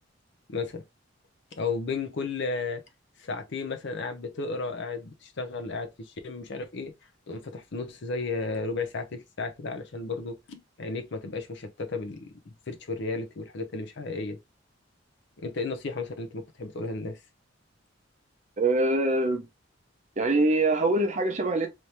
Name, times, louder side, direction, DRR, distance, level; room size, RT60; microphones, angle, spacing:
voice 1, 0.5-0.8 1.5-2.8 3.2-6.9 7.3-14.4 15.4-17.2, left 3 dB, 60° left, 0.7 m, -34 dB
voice 2, 18.6-19.5 20.2-21.7, right 2 dB, 35° right, 0.8 m, -24 dB
3.2 x 2.8 x 3.2 m
head